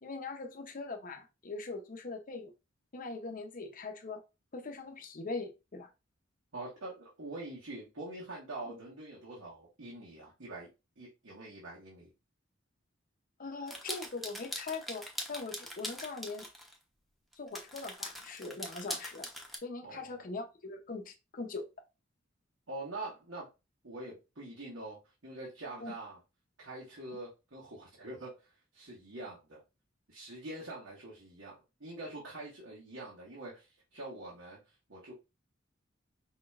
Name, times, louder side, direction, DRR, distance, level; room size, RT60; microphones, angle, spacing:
voice 1, 0.0-2.5 2.9-4.2 4.5-5.9 8.7-8.8 13.4-16.5 17.4-19.3 19.6-21.7 25.8-26.0, left 3 dB, 45° left, 0.6 m, -41 dB
voice 2, 6.5-10.7 11.0-12.1 19.8-20.1 22.7-23.5 23.8-26.2 26.6-29.6 30.1-35.1, right 2 dB, 85° right, 1.5 m, -45 dB
sound 1, 13.7-16.7 17.3-19.6, equal, ahead, 0.8 m, -42 dB
5.0 x 3.9 x 2.4 m
head